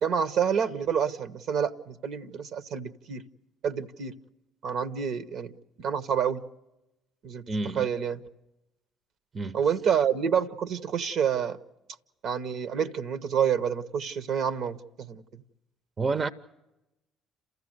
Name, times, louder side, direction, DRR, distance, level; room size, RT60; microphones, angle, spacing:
voice 1, 0.0-3.2 3.6-4.1 4.6-5.5 5.8-6.4 7.2-7.4 7.7-8.2 9.5-11.6 12.2-15.2, right 7 dB, 65° right, 0.9 m, -28 dB
voice 2, 7.5-7.9 9.3-9.6 16.0-16.3, right 3 dB, 35° right, 0.7 m, -29 dB
28.5 x 14.5 x 7.9 m
hypercardioid pair, 55°, 0 cm